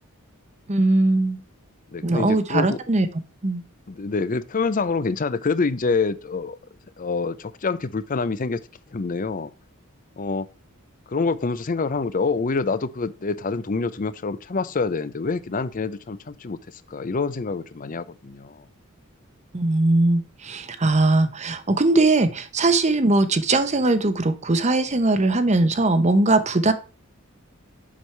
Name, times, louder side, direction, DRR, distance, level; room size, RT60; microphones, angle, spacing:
voice 1, 0.7-1.4 2.0-3.1 3.4-3.6 19.5-26.7, right 2 dB, 30° right, 0.8 m, -20 dB
voice 2, 1.9-2.8 3.9-6.6 7.0-8.6 8.9-9.5 10.2-10.5 11.1-18.6, left 4 dB, 40° left, 0.5 m, -26 dB
7.4 x 6.2 x 3.3 m
head